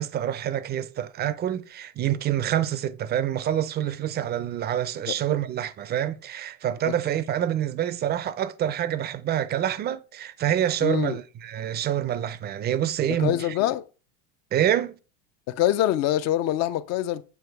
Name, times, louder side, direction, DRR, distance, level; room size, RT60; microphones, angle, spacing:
voice 1, 0.0-13.5 14.5-15.0, right 11 dB, 30° right, 0.5 m, -27 dB
voice 2, 10.8-11.2 13.2-13.9 15.5-17.2, left 13 dB, 45° left, 0.5 m, -24 dB
7.9 x 2.8 x 4.5 m
supercardioid pair, 130°, 36 cm